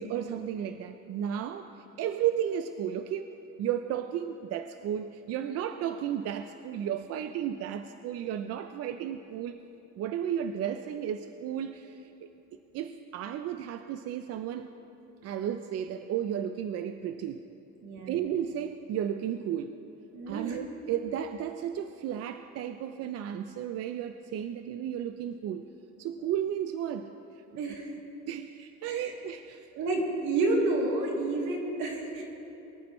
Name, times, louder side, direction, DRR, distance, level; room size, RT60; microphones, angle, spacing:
voice 1, 0.0-3.3 3.6-9.6 10.0-12.3 12.7-14.7 15.2-17.4 18.1-19.8 20.3-25.7 26.0-27.1 27.7-27.8 28.3-29.7, right 9 dB, 55° right, 9 dB, 0.5 m, -33 dB
voice 2, 17.8-18.2 20.1-20.6 27.5-27.9 28.8-29.1 29.7-32.2, right 2 dB, 85° right, -2 dB, 2.9 m, -30 dB
23.0 x 14.0 x 3.2 m, 2.9 s
cardioid pair, 140°, 29 cm